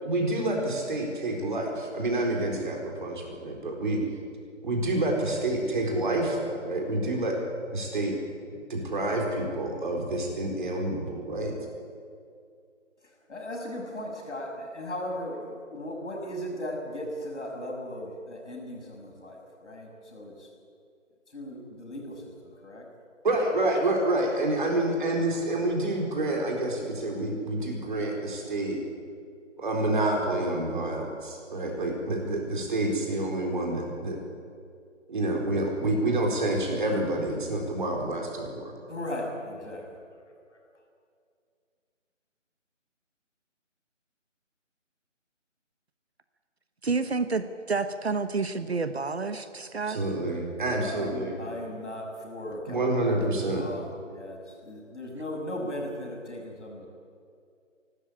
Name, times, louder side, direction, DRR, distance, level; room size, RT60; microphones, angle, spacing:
voice 1, 0.0-4.0 4.6-7.4 7.7-8.1 8.7-11.5 23.2-28.8 29.6-34.2 35.1-38.6 49.9-51.4 52.7-53.6, right 1 dB, 40° right, 1 dB, 4.4 m, -28 dB
voice 2, 13.0-20.5 21.3-22.9 38.9-40.0 40.5-40.8 50.7-56.9, left 1 dB, 65° left, 0 dB, 6.8 m, -37 dB
voice 3, 46.8-50.0, right 4 dB, 55° right, 11 dB, 1.2 m, -29 dB
28.0 x 13.0 x 8.7 m, 2.3 s
figure-of-eight pair, 165°, 38 cm